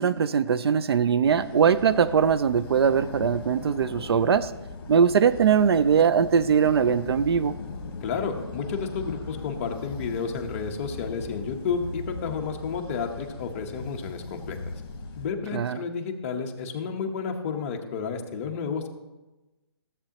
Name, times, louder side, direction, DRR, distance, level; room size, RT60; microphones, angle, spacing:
voice 1, 0.0-4.5 4.9-7.5 15.5-15.8, right 7 dB, 65° right, 14 dB, 0.5 m, -21 dB
sound 1, 1.2-15.3, left 3 dB, 50° left, 1.5 m, -39 dB
voice 2, 8.0-14.6 15.2-18.9, left 5 dB, 30° left, 4 dB, 1.0 m, -31 dB
14.5 x 8.2 x 2.9 m, 1.1 s
hypercardioid pair, 155°, 14 cm